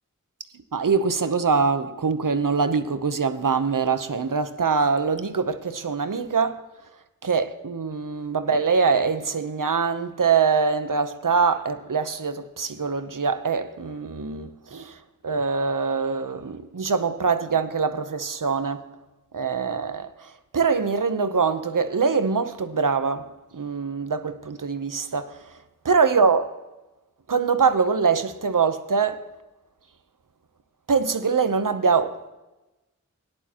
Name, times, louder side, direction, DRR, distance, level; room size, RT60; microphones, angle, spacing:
voice 1, 0.7-6.6 7.2-18.8 19.3-25.6 25.8-26.5 27.3-29.2 30.9-32.2, right 5 dB, 75° right, 0.9 m, -24 dB
17.5 x 11.0 x 3.0 m
wide cardioid pair, 50°, 32 cm